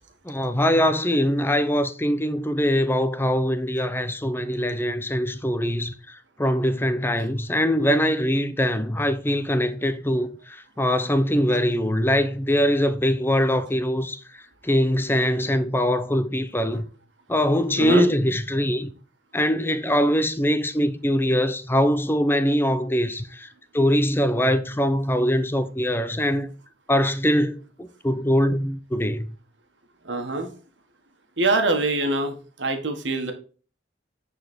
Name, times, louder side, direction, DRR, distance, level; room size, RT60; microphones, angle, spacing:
voice 1, 0.3-5.9 6.4-14.2 14.6-16.9 17.3-18.9 19.3-23.5 23.7-26.5 26.9-29.3, equal, 10° left, 0.7 m, -22 dB
voice 2, 17.7-18.1 30.0-30.5 31.4-33.3, right 2 dB, 80° right, 1.6 m, -24 dB
9.8 x 4.3 x 4.4 m
head